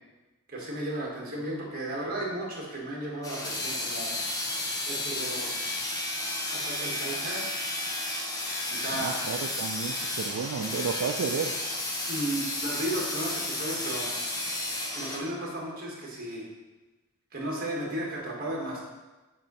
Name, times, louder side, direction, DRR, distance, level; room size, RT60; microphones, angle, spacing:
voice 1, 0.5-4.1 4.8-5.6 6.5-7.5 8.7-9.2 12.1-14.1 14.9-16.5 17.3-18.8, right 1 dB, 40° right, -3 dB, 1.5 m, -34 dB
sound 1, 3.2-15.2, left 1 dB, 15° left, 0.7 m, -32 dB
voice 2, 8.9-11.6, right 6 dB, 70° right, 4 dB, 0.4 m, -32 dB
7.4 x 2.7 x 5.4 m, 1.1 s
head